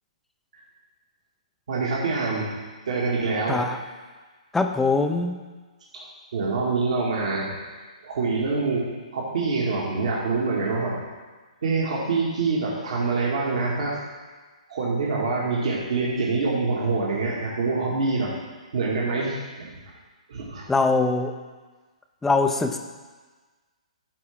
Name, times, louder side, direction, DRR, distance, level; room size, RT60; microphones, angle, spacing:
voice 1, 1.7-2.5 2.9-3.7 5.9-6.1 6.3-7.5 8.0-11.0 11.6-14.0 14.7-18.3 18.7-19.7 20.3-20.7, right 3 dB, 60° right, -4 dB, 1.9 m, -25 dB
voice 2, 4.5-5.4 20.7-21.3 22.2-22.8, left 3 dB, 5° left, 5 dB, 0.5 m, -22 dB
13.0 x 4.5 x 3.5 m, 1.3 s
figure-of-eight pair, 130°, 4 cm